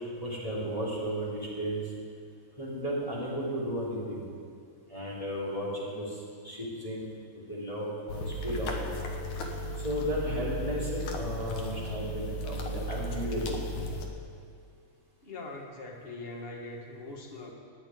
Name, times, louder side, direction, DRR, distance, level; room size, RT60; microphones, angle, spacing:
voice 1, 0.2-1.8 2.6-4.2 4.9-6.2 6.4-7.0 7.3-8.9 9.8-13.6, equal, 10° left, -7 dB, 3.0 m, -34 dB
sound 1, 8.1-14.1, equal, 75° left, 2.5 m, -35 dB
voice 2, 15.2-17.5, left 2 dB, 40° left, 0 dB, 0.8 m, -42 dB
10.5 x 9.0 x 9.2 m, 2.3 s
omnidirectional pair, 3.4 m